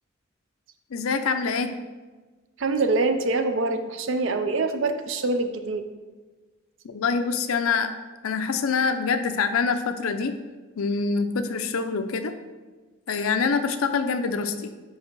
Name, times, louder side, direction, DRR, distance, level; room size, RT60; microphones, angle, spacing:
voice 1, 0.9-1.7 6.8-7.9 8.2-10.4 10.8-12.3 13.1-14.7, left 5 dB, 80° left, 8 dB, 0.5 m, -25 dB
voice 2, 2.6-5.8, right 3 dB, 60° right, 7 dB, 0.5 m, -25 dB
4.6 x 4.6 x 4.6 m, 1.3 s
head